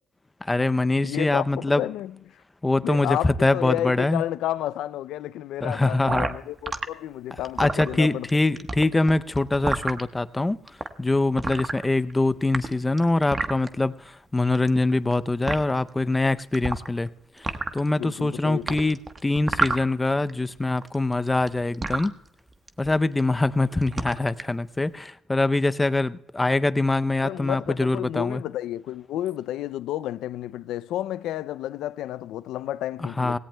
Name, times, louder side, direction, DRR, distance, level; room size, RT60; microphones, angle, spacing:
voice 1, 0.5-1.8 2.6-4.2 5.6-6.3 7.6-10.6 11.0-13.9 14.3-17.1 17.7-22.1 22.8-28.4 33.2-33.4, left 2 dB, 15° left, 0.5 m, -23 dB
voice 2, 1.0-2.2 2.8-8.3 18.0-18.8 27.2-33.4, left 13 dB, 85° left, 0.4 m, -31 dB
sound 1, 6.1-6.9 7.4-8.3 8.6-10.0 10.7-10.9 11.4-12.1 12.4-13.7 14.6-15.1 15.5-15.6 16.5-17.1 17.4-17.9 18.7-20.3 20.6-22.1 22.7-22.9 23.2-23.5 23.8-24.5, right 3 dB, 30° right, 1.1 m, -28 dB
18.0 x 17.5 x 2.2 m
cardioid pair, 90°, 0 cm